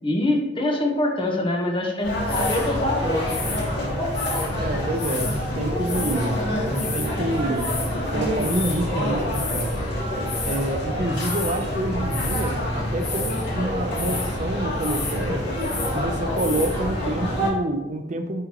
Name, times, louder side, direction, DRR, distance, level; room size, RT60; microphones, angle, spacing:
voice 1, 0.0-3.4, left 1 dB, 25° left, 1 dB, 1.0 m, -24 dB
sound 1, 2.0-17.5, equal, 65° left, 2.2 m, -27 dB
sound 2, 2.3-2.7 3.3-4.5 5.0-5.4 5.8-6.3 6.5-7.1 7.6-7.9 8.4-8.9 9.2-9.8 10.3-10.7 11.2-11.6 12.0-12.5 13.0-13.5 13.9-14.3 14.8-15.2 15.4-16.0 16.4-16.7, left 4 dB, 45° left, 1.3 m, -32 dB
voice 2, 4.6-7.7 8.1-9.8 10.4-15.5 15.9-18.4, right 1 dB, 40° right, 7 dB, 0.6 m, -28 dB
10.5 x 3.9 x 2.9 m, 1.0 s
head